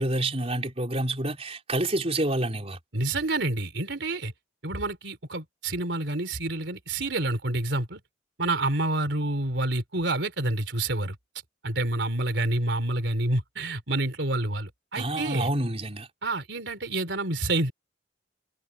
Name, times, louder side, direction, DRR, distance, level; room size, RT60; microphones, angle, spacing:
voice 1, 0.0-2.8 14.9-16.1, right 1 dB, 35° right, 4.3 m, -28 dB
voice 2, 2.9-4.3 4.6-8.0 8.4-11.1 11.6-15.5 16.2-17.7, right 2 dB, 75° right, 3.4 m, -28 dB
head